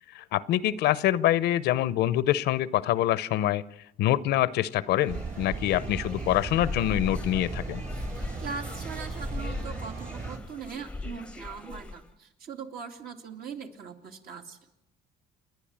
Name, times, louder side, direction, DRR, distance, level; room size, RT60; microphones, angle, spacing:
voice 1, 0.1-3.6 4.0-7.8, left 13 dB, 80° left, 17 dB, 0.8 m, -25 dB
sound 1, 4.9-12.1, left 2 dB, 5° left, 0.8 m, -39 dB
sound 2, 5.1-10.4, right 4 dB, 45° right, 3.2 m, -37 dB
voice 2, 8.1-14.6, right 5 dB, 60° right, 3 dB, 2.6 m, -40 dB
29.0 x 10.5 x 8.8 m, 0.90 s
cardioid pair, 110°, 17 cm